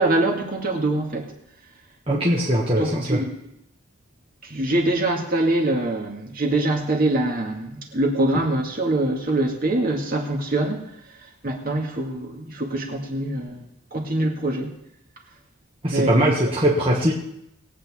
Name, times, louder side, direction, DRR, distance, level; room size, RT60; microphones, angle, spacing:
voice 1, 0.0-1.3 2.8-3.4 4.4-10.9 11.4-13.6 13.9-14.8 15.9-16.1 16.5-16.6, right 2 dB, 40° right, 0 dB, 2.2 m, -24 dB
voice 2, 2.1-3.2 15.8-17.1, right 1 dB, 25° right, -5 dB, 1.6 m, -20 dB
21.0 x 8.6 x 3.7 m, 0.78 s
head